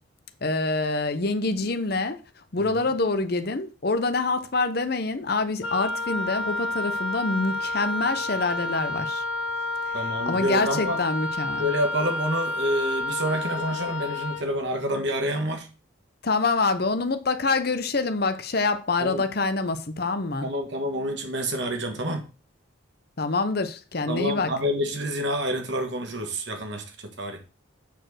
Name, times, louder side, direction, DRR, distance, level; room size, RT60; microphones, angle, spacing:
voice 1, 0.4-2.2 2.5-9.2 10.3-11.7 16.2-20.5 23.2-24.5, left 3 dB, 50° left, 0.8 m, -26 dB
Wind instrument woodwind instrument, 5.6-14.5, left 2 dB, 80° left, 0.9 m, -30 dB
voice 2, 9.9-11.0 11.6-15.7 19.0-19.2 20.4-22.3 24.1-27.4, equal, 60° right, 1.7 m, -28 dB
8.3 x 4.5 x 6.3 m
head